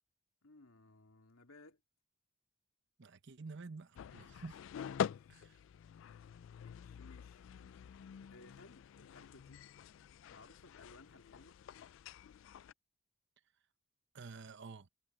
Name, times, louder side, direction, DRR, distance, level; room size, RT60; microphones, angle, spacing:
voice 1, 0.4-1.8 4.8-5.4 6.6-7.5 8.3-9.6 10.3-11.6, left 2 dB, 75° left, 2.7 m, -60 dB
voice 2, 3.0-4.6 5.3-5.6 14.1-14.9, right 4 dB, 55° right, 0.8 m, -50 dB
sound 1, 3.9-12.7, left 8 dB, 60° left, 0.3 m, -45 dB
head